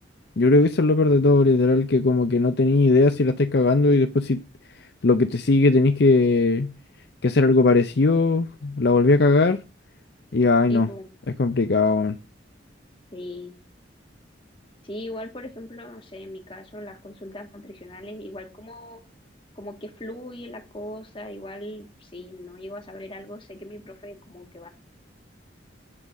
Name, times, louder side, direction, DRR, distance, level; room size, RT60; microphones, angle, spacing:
voice 1, 0.4-4.4 5.0-6.7 7.2-9.6 10.3-10.9 11.4-12.2, left 3 dB, 60° left, 0.6 m, -19 dB
voice 2, 10.7-11.1 13.1-13.6 14.8-19.0 19.5-24.7, left 1 dB, 30° left, 1.8 m, -39 dB
9.8 x 4.0 x 6.5 m
head